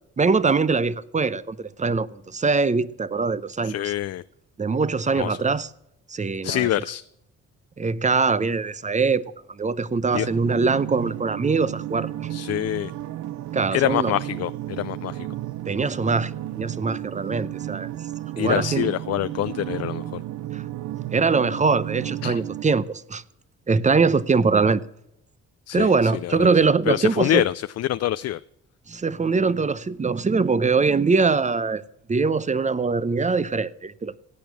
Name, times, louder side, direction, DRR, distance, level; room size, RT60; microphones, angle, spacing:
voice 1, 0.2-3.7 4.6-5.7 6.1-6.7 7.8-9.2 9.6-12.3 13.5-14.1 15.7-17.9 18.4-18.9 20.5-20.6 21.1-23.2 23.7-24.8 25.7-27.4 28.9-31.8 32.1-34.2, right 4 dB, 25° right, 0.7 m, -22 dB
voice 2, 3.6-4.2 5.1-5.4 6.4-7.0 10.1-10.3 12.3-12.9 13.7-15.3 18.4-20.2 22.2-22.4 25.7-26.5 26.9-28.4, left 13 dB, 55° left, 0.5 m, -26 dB
sound 1, 10.1-22.7, right 14 dB, 75° right, 0.7 m, -33 dB
16.5 x 9.1 x 8.3 m
cardioid pair, 90°, 30 cm